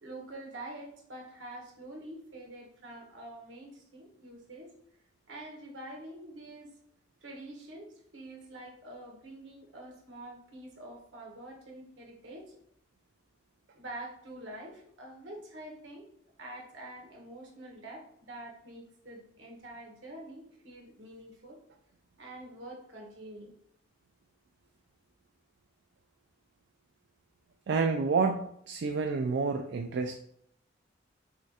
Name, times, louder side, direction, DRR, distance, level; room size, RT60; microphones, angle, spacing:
voice 1, 0.0-4.7 5.3-6.7 7.2-12.5 13.7-16.0 16.4-21.6 22.2-23.5, right 1 dB, 75° right, 0 dB, 1.1 m, -46 dB
voice 2, 27.7-30.2, right 4 dB, 60° right, 4 dB, 0.3 m, -29 dB
6.2 x 2.4 x 2.7 m, 0.71 s
head